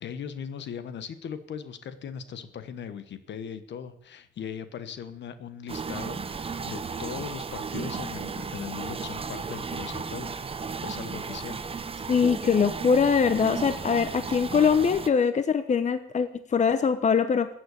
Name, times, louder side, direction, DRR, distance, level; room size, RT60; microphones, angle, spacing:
voice 1, 0.0-10.4 10.8-11.6, left 7 dB, 65° left, 12 dB, 1.3 m, -39 dB
sound 1, 5.7-15.1, right 5 dB, 30° right, 0.9 m, -34 dB
voice 2, 12.1-17.5, left 6 dB, 35° left, 11 dB, 0.9 m, -23 dB
14.5 x 7.9 x 8.4 m, 0.75 s
cardioid pair, 90°, 20 cm